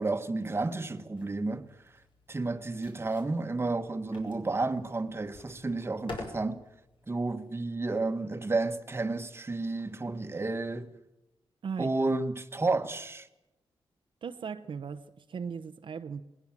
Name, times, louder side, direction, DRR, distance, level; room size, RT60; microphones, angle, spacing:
voice 1, 0.0-1.8 2.3-6.6 7.1-10.9 11.8-13.3, right 3 dB, 25° right, 1.4 m, -31 dB
sound 1, 1.2-7.5, left 2 dB, 60° left, 5.9 m, -49 dB
voice 2, 11.6-12.1 14.2-16.2, right 6 dB, 60° right, 0.9 m, -38 dB
21.0 x 20.0 x 7.4 m
cardioid pair, 95°, 10 cm